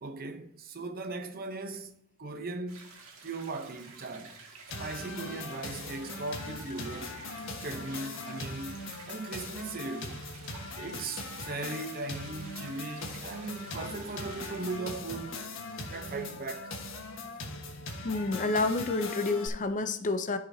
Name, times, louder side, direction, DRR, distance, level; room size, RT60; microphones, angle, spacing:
voice 1, 0.0-3.0 3.2-4.4 4.8-7.2 7.6-8.8 9.1-10.2 10.8-15.4 15.9-16.8, right 3 dB, 45° right, 0.8 m, -38 dB
sound 1, 2.7-14.8, right 4 dB, 70° right, 2.0 m, -51 dB
sound 2, 4.7-19.5, left 2 dB, 65° left, 1.4 m, -40 dB
voice 2, 18.0-20.4, left 3 dB, 35° left, 0.6 m, -29 dB
13.0 x 5.9 x 2.8 m
head